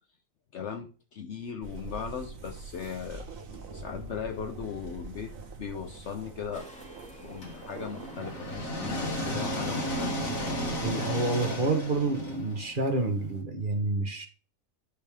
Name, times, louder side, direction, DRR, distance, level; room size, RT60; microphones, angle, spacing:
voice 1, 0.5-3.3 3.7-6.7 7.2-10.6, left 7 dB, 60° left, 6 dB, 1.0 m, -38 dB
sound 1, 1.6-12.4, right 4 dB, 80° right, 1.6 m, -45 dB
sound 2, 6.5-11.6, equal, 5° left, 2.3 m, -52 dB
sound 3, 7.4-13.3, equal, 80° left, 2.8 m, -34 dB
voice 2, 10.8-14.3, right 2 dB, 40° right, 5 dB, 1.5 m, -29 dB
10.0 x 5.3 x 3.5 m, 0.36 s
omnidirectional pair, 1.4 m